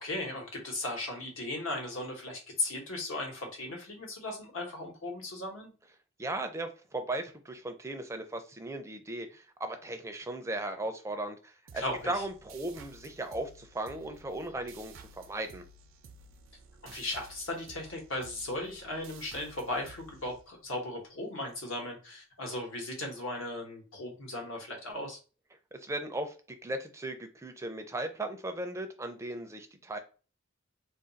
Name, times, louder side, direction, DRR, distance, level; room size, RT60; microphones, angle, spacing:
voice 1, 0.0-5.7 11.7-12.1 16.8-25.2, left 2 dB, 80° left, 1 dB, 1.1 m, -37 dB
voice 2, 6.2-15.6 25.7-30.0, right 2 dB, 15° right, 7 dB, 0.4 m, -37 dB
sound 1, 11.7-20.9, right 3 dB, 75° right, 0.5 m, -54 dB
2.5 x 2.3 x 3.9 m, 0.35 s
head